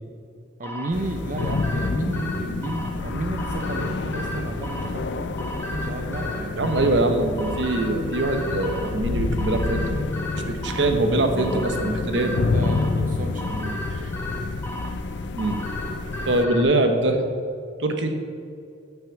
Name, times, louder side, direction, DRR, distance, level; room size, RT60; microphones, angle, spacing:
sound 1, 0.6-16.6, equal, 10° left, 1.1 m, -36 dB
voice 1, 0.6-5.4 5.7-7.1 12.4-14.0, right 2 dB, 45° right, 4 dB, 0.6 m, -33 dB
sound 2, 0.9-16.5, left 3 dB, 65° left, 0.5 m, -28 dB
voice 2, 6.5-9.8 10.3-12.4 13.9-14.1 15.3-15.6 16.3-17.2 17.8-18.2, right 2 dB, 70° right, 6 dB, 1.1 m, -23 dB
9.0 x 6.0 x 7.2 m, 2.4 s
head